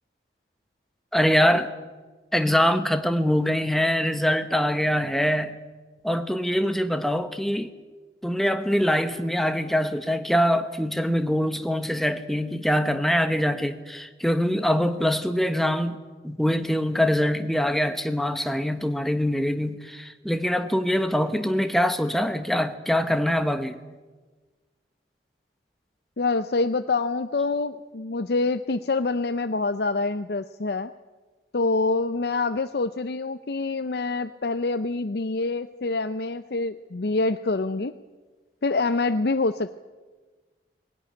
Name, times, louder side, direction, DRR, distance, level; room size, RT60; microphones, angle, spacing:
voice 1, 1.1-1.7 2.3-5.6 6.0-7.7 8.2-23.8, equal, ahead, 1.1 m, -24 dB
voice 2, 26.2-30.9 31.5-37.9 38.6-39.8, left 3 dB, 60° left, 0.6 m, -26 dB
19.5 x 17.5 x 10.0 m
head